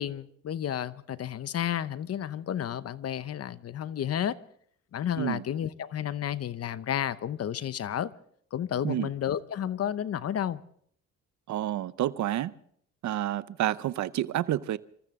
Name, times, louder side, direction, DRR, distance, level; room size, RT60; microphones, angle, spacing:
voice 1, 0.0-4.4 4.9-8.1 8.5-10.6, left 10 dB, 55° left, 0.8 m, -31 dB
voice 2, 11.5-12.5 13.0-14.8, right 13 dB, 70° right, 0.7 m, -29 dB
26.5 x 14.0 x 3.7 m
cardioid pair, 90°, 30 cm